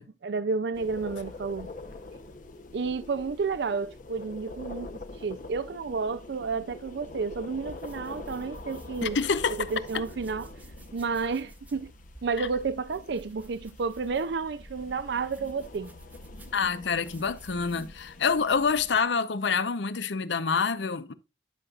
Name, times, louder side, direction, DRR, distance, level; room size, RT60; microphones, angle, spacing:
voice 1, 0.0-1.7 2.7-4.9 5.2-9.2 9.5-10.5 10.9-11.9 12.2-15.9, right 4 dB, 65° right, 0.4 m, -31 dB
sound 1, 0.7-19.0, left 2 dB, 45° left, 0.8 m, -45 dB
sound 2, 7.2-18.2, right 1 dB, 10° right, 0.9 m, -51 dB
voice 2, 9.0-10.0 12.4-12.5 16.5-21.1, left 5 dB, 80° left, 0.7 m, -27 dB
11.5 x 6.3 x 2.4 m
head